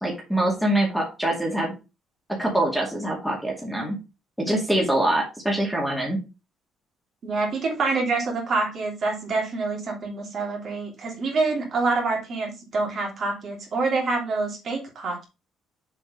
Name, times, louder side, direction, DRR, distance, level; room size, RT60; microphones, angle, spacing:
voice 1, 0.0-1.7 2.3-4.0 4.4-6.2, right 1 dB, ahead, -2 dB, 2.2 m, -24 dB
voice 2, 7.2-15.3, right 3 dB, 45° right, 0 dB, 2.9 m, -26 dB
7.4 x 4.5 x 5.2 m, 0.28 s
cardioid pair, 145°, 0 cm